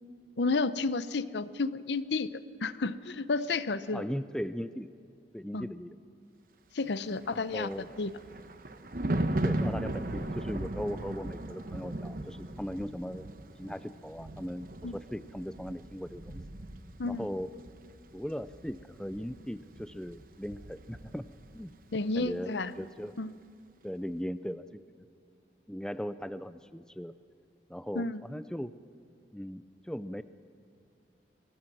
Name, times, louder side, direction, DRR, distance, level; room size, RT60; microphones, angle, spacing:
voice 1, 0.4-2.3 2.6-4.0 5.5-5.7 6.7-7.7 8.0-8.1 14.8-14.9 17.0-17.3 21.9-22.7 23.2-23.3 27.9-28.2, left 3 dB, 75° left, 15 dB, 0.7 m, -31 dB
voice 2, 3.9-4.9 5.3-6.0 7.3-7.9 9.4-13.3 13.6-16.4 17.1-17.5 18.1-21.3 21.5-21.7 22.2-23.1 23.8-24.8 25.7-27.1 27.7-28.7 29.3-30.2, equal, 5° left, 13 dB, 0.4 m, -38 dB
Thunder, 7.2-21.7 22.0-22.3, right 1 dB, 50° right, 1.0 m, -37 dB
23.0 x 19.0 x 6.1 m, 2.5 s
head